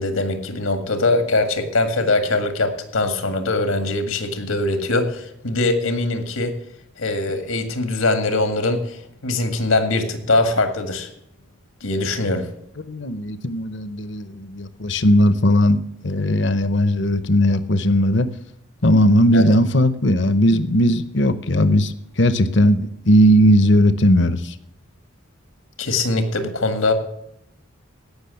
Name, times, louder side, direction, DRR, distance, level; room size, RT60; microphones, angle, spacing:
voice 1, 0.0-6.5 7.0-11.1 11.8-12.5 19.3-19.5 25.8-26.9, left 2 dB, 85° left, 8 dB, 1.9 m, -22 dB
voice 2, 12.9-15.8 16.0-18.3 18.8-24.5, equal, 60° left, 14 dB, 0.8 m, -17 dB
16.5 x 6.2 x 7.0 m, 0.78 s
head